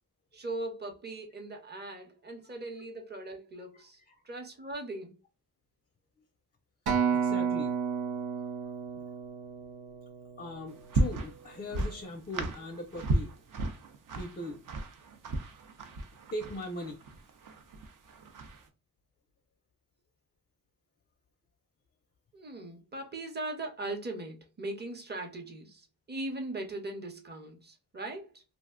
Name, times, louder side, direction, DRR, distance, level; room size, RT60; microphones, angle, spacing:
voice 1, 0.3-4.0 4.2-5.2 22.3-28.4, right 2 dB, 25° right, 0.8 m, -39 dB
voice 2, 3.7-4.2 7.1-8.0 8.9-9.0 10.4-13.3 14.2-14.6 16.3-17.0, left 1 dB, 25° left, 0.5 m, -40 dB
Acoustic guitar, 6.9-11.3 11.9-12.1, right 7 dB, 90° right, 0.9 m, -32 dB
sound 1, 10.7-18.7, right 2 dB, 55° right, 0.7 m, -35 dB
2.5 x 2.1 x 3.6 m
cardioid pair, 90°, 37 cm